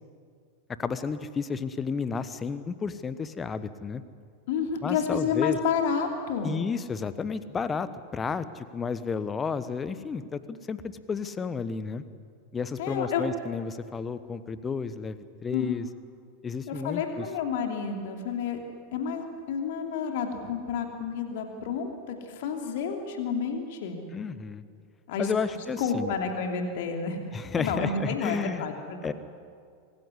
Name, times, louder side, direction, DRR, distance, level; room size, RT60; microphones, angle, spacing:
voice 1, 0.8-4.0 4.8-5.6 6.4-12.0 12.5-15.8 16.4-17.3 24.1-24.6 25.2-26.1 27.3-28.6 29.0-29.1, left 5 dB, 20° left, 14 dB, 1.1 m, -32 dB
voice 2, 4.5-6.6 12.8-13.2 15.5-15.8 16.7-18.6 18.9-24.0 25.1-25.3 25.8-29.1, left 6 dB, 50° left, 4 dB, 2.9 m, -30 dB
25.0 x 16.0 x 9.9 m, 2.2 s
figure-of-eight pair, 90°, 0 cm